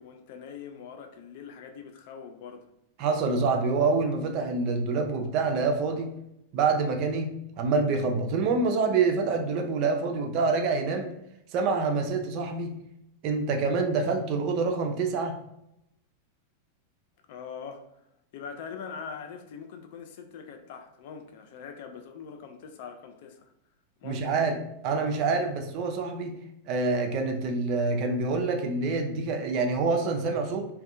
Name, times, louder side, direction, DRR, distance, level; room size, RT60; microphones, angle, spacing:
voice 1, 0.0-2.7 17.3-17.9 18.3-23.5 24.0-24.3, left 6 dB, 50° left, 6 dB, 0.3 m, -42 dB
voice 2, 3.0-6.1 6.5-11.1 11.5-12.7 13.2-15.4 24.0-24.6 24.8-26.3 26.7-30.7, right 4 dB, 40° right, 4 dB, 0.4 m, -26 dB
2.5 x 2.2 x 2.5 m, 0.80 s
figure-of-eight pair, 90°, 0 cm